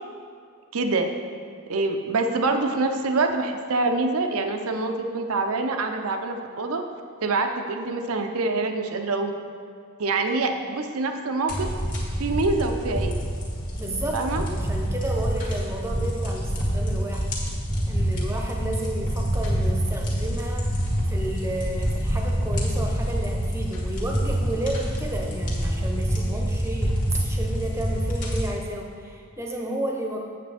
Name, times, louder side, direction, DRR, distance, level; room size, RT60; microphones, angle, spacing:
voice 1, 0.7-1.1 1.7-6.8 7.2-9.3 10.0-11.7 12.2-13.2 14.1-14.4, right 3 dB, 80° right, 5 dB, 0.7 m, -25 dB
sound 1, 11.5-28.5, equal, 35° left, 1.6 m, -26 dB
voice 2, 13.8-17.3 17.9-30.2, right 1 dB, 10° right, 0 dB, 0.8 m, -32 dB
8.5 x 7.4 x 3.5 m, 2.3 s
head